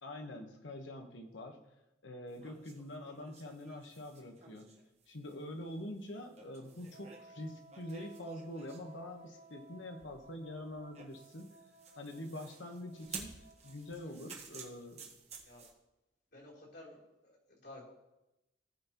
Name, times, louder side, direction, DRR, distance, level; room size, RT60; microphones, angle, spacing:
voice 1, 0.0-1.6 2.0-4.7 5.1-11.5 12.0-15.1, left 1 dB, 90° left, 4 dB, 1.3 m, -45 dB
sound 1, 2.3-8.9 10.0-15.7, right 5 dB, 35° right, 1.4 m, -52 dB
Wind instrument woodwind instrument, 6.9-14.2, right 2 dB, 55° right, 1.3 m, -59 dB
voice 2, 16.3-17.9, left 1 dB, 65° left, -6 dB, 3.9 m, -53 dB
17.0 x 5.7 x 3.1 m, 0.95 s
head